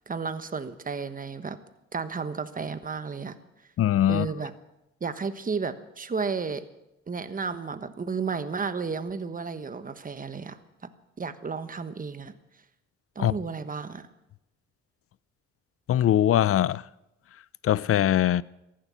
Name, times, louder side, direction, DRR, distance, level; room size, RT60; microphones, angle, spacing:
voice 1, 0.1-1.6 1.9-3.3 4.1-4.5 5.0-6.6 7.1-10.6 11.2-12.3 13.1-14.0, right 5 dB, 30° right, 1.2 m, -32 dB
voice 2, 3.8-4.3 13.2-13.3 15.9-16.8 17.6-18.4, left 11 dB, 50° left, 0.5 m, -21 dB
14.5 x 11.5 x 8.3 m
cardioid pair, 90°, 30 cm